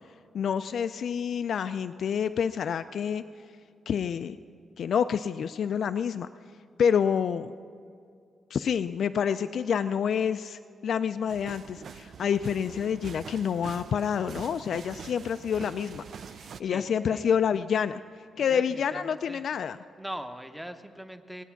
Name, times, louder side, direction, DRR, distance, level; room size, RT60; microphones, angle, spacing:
voice 1, 0.3-3.2 3.9-4.4 4.8-6.3 6.8-7.5 8.5-16.0 16.4-18.0 18.4-19.8, left 7 dB, 60° left, 10 dB, 0.3 m, -28 dB
sound 1, 11.3-16.6, right 7 dB, 55° right, 0.4 m, -44 dB
voice 2, 18.4-19.4 20.0-21.4, equal, 5° right, 8 dB, 0.7 m, -41 dB
18.0 x 9.0 x 5.8 m, 2.3 s
cardioid pair, 130°, 0 cm